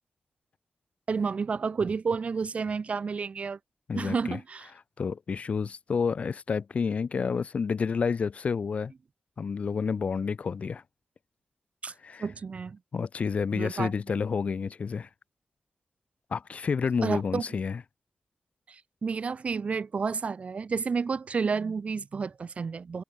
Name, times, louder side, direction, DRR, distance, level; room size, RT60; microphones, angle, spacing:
voice 1, 1.1-3.6 4.0-4.7 11.8-11.9 12.2-12.8 13.5-13.9 17.0-17.4 19.0-23.0, right 5 dB, 65° right, 0.8 m, -30 dB
voice 2, 3.9-4.4 5.0-8.9 9.4-10.8 12.0-12.3 12.9-15.1 16.3-17.8, left 5 dB, 65° left, 0.3 m, -29 dB
wide cardioid pair, 120°, 2 cm